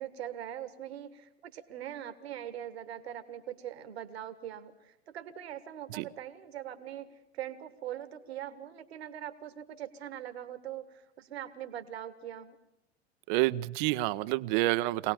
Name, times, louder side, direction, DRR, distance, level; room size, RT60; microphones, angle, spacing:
voice 1, 0.0-7.1 7.3-12.6, right 11 dB, 70° right, 11 dB, 1.7 m, -42 dB
voice 2, 13.3-15.1, right 18 dB, 50° right, 16 dB, 0.8 m, -28 dB
24.0 x 18.5 x 7.2 m, 0.82 s
figure-of-eight pair, 85°, 33 cm